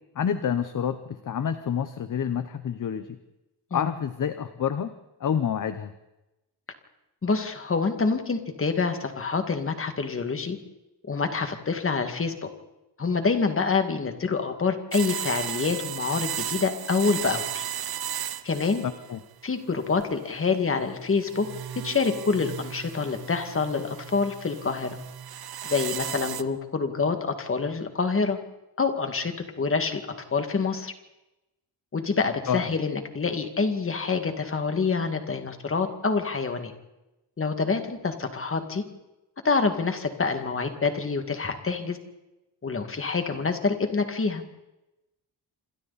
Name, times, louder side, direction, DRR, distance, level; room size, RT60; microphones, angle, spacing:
voice 1, 0.1-3.2 3.7-4.9 5.2-5.9 19.1-19.2 32.5-32.7, left 8 dB, 45° left, 10 dB, 1.0 m, -28 dB
voice 2, 7.2-10.6 11.1-12.5 13.0-17.6 18.4-18.8 19.4-21.5 21.7-25.0 25.6-28.4 28.8-30.0 30.3-30.9 31.9-36.7 37.4-38.8 39.4-42.0 42.6-44.4, left 4 dB, 30° left, 6 dB, 2.3 m, -26 dB
sound 1, 14.9-19.2 19.8-20.4 21.2-26.4, right 10 dB, 60° right, 0.9 m, -35 dB
28.5 x 26.0 x 4.3 m, 0.99 s
wide cardioid pair, 165°, 42 cm